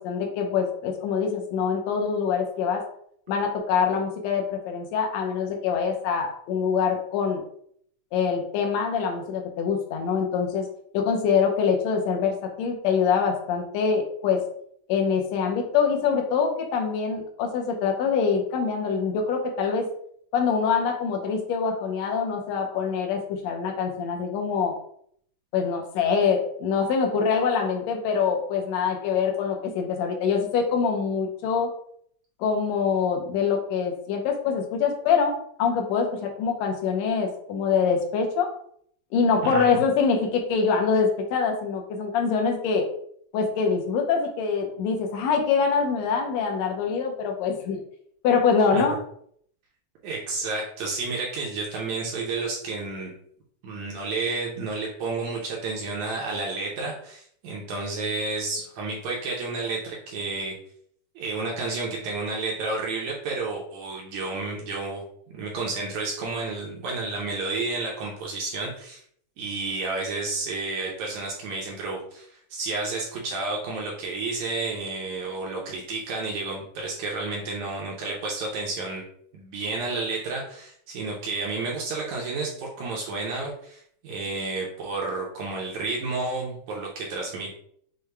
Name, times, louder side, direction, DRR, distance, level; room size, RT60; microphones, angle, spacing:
voice 1, 0.0-2.8 3.3-7.4 8.1-10.7 10.9-14.4 14.9-19.8 20.3-24.8 25.5-31.7 32.4-38.5 39.1-42.9 43.3-47.8 48.2-49.0, left 6 dB, 75° left, 4 dB, 1.6 m, -24 dB
voice 2, 50.0-53.1 53.6-60.6 61.2-65.0 65.3-69.0 69.4-79.0 79.3-87.5, right 3 dB, 70° right, -2 dB, 1.8 m, -31 dB
6.4 x 2.2 x 3.3 m, 0.65 s
omnidirectional pair, 3.7 m